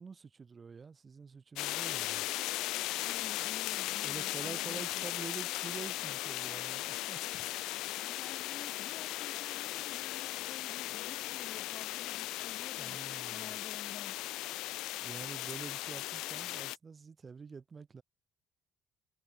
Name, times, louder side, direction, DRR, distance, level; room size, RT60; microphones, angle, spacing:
voice 1, 0.0-2.3 4.0-7.2 8.1-8.3 12.8-13.5 15.0-18.0, right 5 dB, 30° right, 1.5 m, -47 dB
sound 1, 1.6-16.8, left 18 dB, 85° left, 0.5 m, -37 dB
voice 2, 3.0-5.1 7.3-7.4 8.0-13.0 13.3-14.2, left 10 dB, 55° left, 1.4 m, -51 dB
cardioid pair, 105°, 0 cm